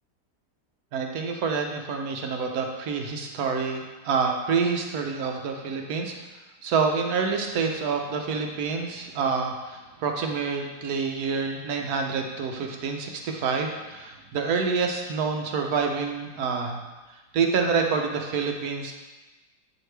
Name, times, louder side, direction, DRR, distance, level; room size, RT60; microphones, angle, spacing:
voice 1, 0.9-6.1 6.6-16.8 17.3-18.9, right 5 dB, 65° right, 3 dB, 1.1 m, -27 dB
8.0 x 4.7 x 3.3 m, 1.2 s
omnidirectional pair, 1.8 m